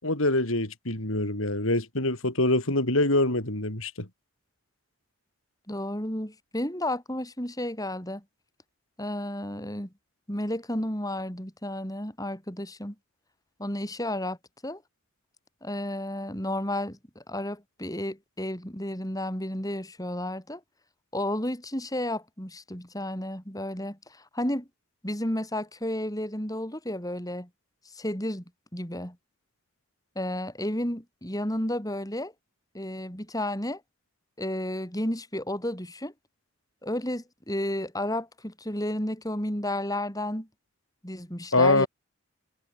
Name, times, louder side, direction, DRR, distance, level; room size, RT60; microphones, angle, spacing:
voice 1, 0.0-4.1 41.5-41.9, left 2 dB, 70° left, 4.7 m, -24 dB
voice 2, 5.7-8.2 9.0-9.9 10.3-12.9 13.6-14.4 14.6-14.8 15.6-20.6 21.1-24.7 25.0-27.5 27.9-28.4 28.7-29.2 30.2-32.3 32.7-33.8 34.4-36.1 36.8-40.5 41.0-41.9, left 1 dB, 15° left, 5.9 m, -32 dB
head